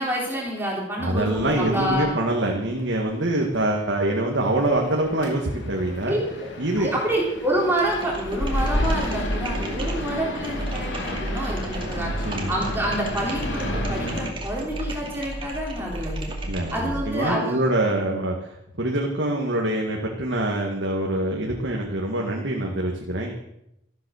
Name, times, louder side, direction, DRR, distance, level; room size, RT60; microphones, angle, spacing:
voice 1, 0.0-2.1 6.1-12.1 12.5-16.3 16.7-17.7 18.0-18.2, right 1 dB, 10° right, -3 dB, 3.5 m, -28 dB
voice 2, 1.0-6.1 6.6-6.9 11.8-12.5 16.5-23.3, right 1 dB, 65° right, 0 dB, 1.9 m, -25 dB
sound 1, 1.3-14.3, left 1 dB, 70° left, 2.9 m, -32 dB
sound 2, 7.8-17.1, right 1 dB, 25° right, 2.4 m, -33 dB
14.0 x 12.0 x 6.5 m, 0.83 s
head